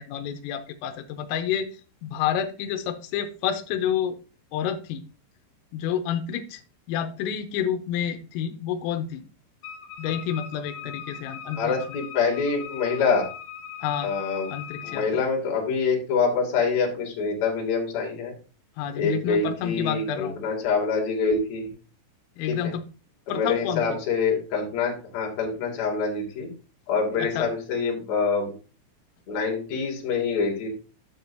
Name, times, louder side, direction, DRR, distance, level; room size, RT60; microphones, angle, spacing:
voice 1, 0.0-1.7 2.0-4.2 4.5-5.0 5.7-6.6 6.9-9.2 10.0-12.0 13.8-14.2 14.5-15.3 18.8-20.4 22.4-22.9 23.3-24.0 27.2-27.5, left 9 dB, 90° left, 7 dB, 3.5 m, -29 dB
Wind instrument woodwind instrument, 9.6-15.1, left 8 dB, 65° left, 2.2 m, -40 dB
voice 2, 11.6-13.3 14.0-14.5 14.8-18.3 19.0-21.7 22.5-22.7 23.3-26.5 26.9-28.5 29.3-30.7, left 5 dB, 40° left, -1 dB, 3.2 m, -25 dB
10.5 x 7.6 x 2.8 m, 0.35 s
omnidirectional pair, 5.9 m